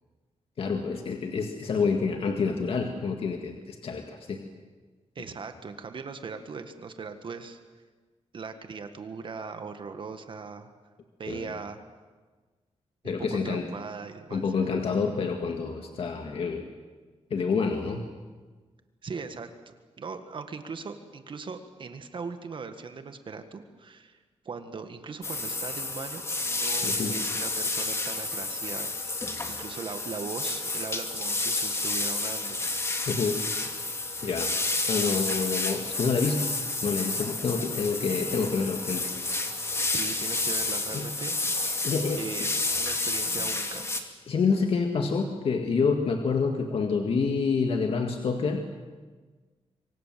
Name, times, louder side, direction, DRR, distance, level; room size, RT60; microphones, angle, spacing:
voice 1, 0.6-4.4 11.3-11.5 13.0-13.6 14.3-16.7 17.3-18.0 26.8-27.1 33.1-33.4 34.2-34.5 34.9-36.5 36.8-39.1 40.9-41.1 41.8-42.2 44.3-48.6, left 5 dB, 55° left, 4 dB, 2.1 m, -27 dB
voice 2, 5.2-7.6 8.3-10.7 11.2-11.8 13.0-14.7 19.0-24.2 24.5-32.6 39.9-41.4 42.2-43.9, right 5 dB, 45° right, 8 dB, 1.8 m, -39 dB
sound 1, 25.2-44.0, left 2 dB, 25° left, 2.4 m, -30 dB
26.5 x 24.5 x 7.7 m, 1.4 s
wide cardioid pair, 160°, 11 cm